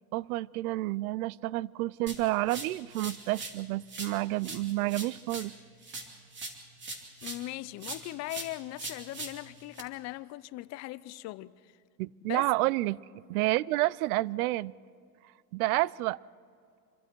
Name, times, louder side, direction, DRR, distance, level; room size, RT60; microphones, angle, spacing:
voice 1, 0.1-5.5 12.0-13.0 13.3-14.7 15.5-16.2, right 18 dB, 75° right, 0.6 m, -29 dB
sound 1, 2.1-3.6 3.9-7.5 7.8-9.8, right 2 dB, 25° right, 2.8 m, -42 dB
voice 2, 7.2-11.7 12.3-12.4, left 18 dB, 40° left, 0.5 m, -39 dB
26.0 x 22.5 x 4.6 m
supercardioid pair, 130°, 44 cm